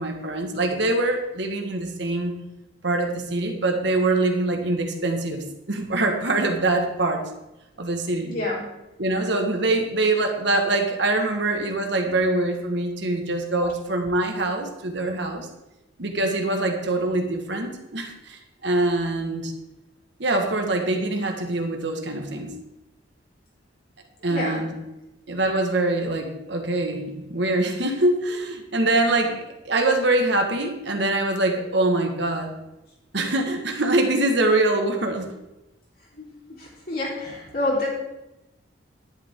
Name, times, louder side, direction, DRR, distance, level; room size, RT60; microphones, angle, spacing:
voice 1, 0.0-2.3 2.8-7.2 7.8-8.3 9.0-15.5 16.0-19.5 20.2-22.5 24.2-24.7 25.3-32.5 33.1-35.3, right 2 dB, 65° right, 4 dB, 1.5 m, -24 dB
voice 2, 8.3-8.6 24.3-24.6 36.1-36.3 36.6-37.9, left 2 dB, 50° left, -4 dB, 3.6 m, -28 dB
11.0 x 10.5 x 3.7 m, 0.97 s
head